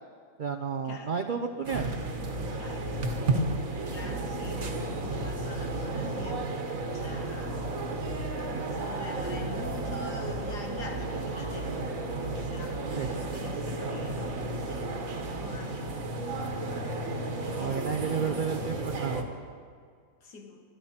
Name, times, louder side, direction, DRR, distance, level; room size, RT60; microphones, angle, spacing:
voice 1, 0.4-1.9 13.0-13.1 17.6-19.3, right 6 dB, 80° right, 6 dB, 0.4 m, -31 dB
sound 1, 1.6-19.2, right 2 dB, 55° right, 1.6 m, -33 dB
voice 2, 2.6-3.4 3.9-6.5 6.9-7.6 8.4-11.8 12.3-16.1 17.2-18.5 20.2-20.6, left 3 dB, 80° left, 2 dB, 2.2 m, -45 dB
24.0 x 10.5 x 4.3 m, 2.1 s
omnidirectional pair, 1.7 m